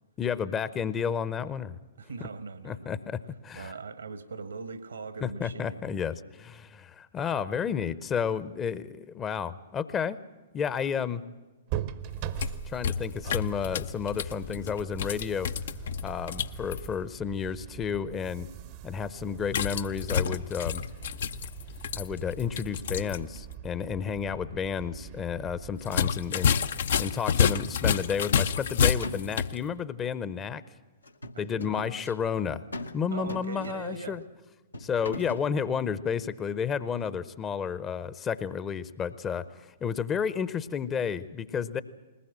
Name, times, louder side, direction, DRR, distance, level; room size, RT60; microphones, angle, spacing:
voice 1, 0.2-1.8 2.6-3.7 5.2-10.2 10.5-11.2 12.7-15.5 16.0-18.5 18.8-20.8 21.9-26.6 27.0-30.6 31.4-32.6 32.9-34.2 34.8-41.8, left 7 dB, 20° left, 15 dB, 0.8 m, -31 dB
voice 2, 2.0-3.0 3.5-5.8 31.3-32.2 33.1-34.2, right 4 dB, 75° right, 11 dB, 1.6 m, -40 dB
sound 1, 11.7-27.4, right 12 dB, 40° right, 0.8 m, -42 dB
sound 2, 12.1-16.9 19.5-23.2 23.5-23.6 25.8-29.6, left 7 dB, 55° left, 0.6 m, -29 dB
sound 3, 28.7-28.8 29.0-29.6 31.0-32.0 32.7-33.0 33.3-34.1 34.7-35.5, left 2 dB, 80° left, 1.3 m, -40 dB
21.0 x 19.5 x 7.6 m, 1.2 s
figure-of-eight pair, 110°, 0 cm